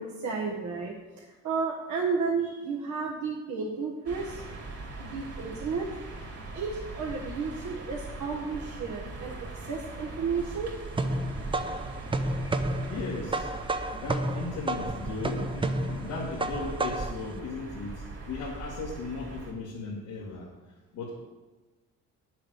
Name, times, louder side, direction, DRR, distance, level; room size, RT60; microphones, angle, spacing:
voice 1, 0.0-4.4 5.0-5.9 6.5-10.7, right 5 dB, 70° right, -2 dB, 1.6 m, -32 dB
sound 1, 4.0-19.5, right 3 dB, 50° right, 3.0 m, -41 dB
voice 2, 4.7-5.3 6.3-6.5 10.4-10.5 11.1-12.2 12.9-13.5 13.9-20.5 20.9-21.2, left 3 dB, 90° left, -5 dB, 2.3 m, -38 dB
sound 2, 10.4-17.2, right 2 dB, 15° right, 0.7 m, -31 dB
9.5 x 7.4 x 6.5 m, 1.2 s
cardioid pair, 90°, 30 cm